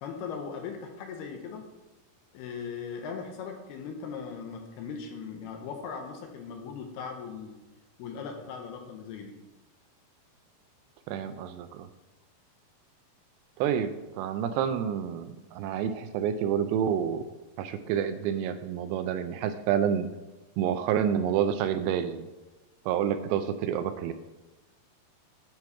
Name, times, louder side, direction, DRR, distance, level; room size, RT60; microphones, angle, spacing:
voice 1, 0.0-1.6 2.3-7.6 8.0-9.3, left 6 dB, 75° left, 3 dB, 2.7 m, -39 dB
voice 2, 11.1-11.9 13.6-17.2 17.6-20.1 20.6-22.3 22.9-24.1, right 9 dB, 85° right, 10 dB, 2.6 m, -28 dB
9.6 x 4.5 x 5.7 m, 1.1 s
omnidirectional pair, 5.0 m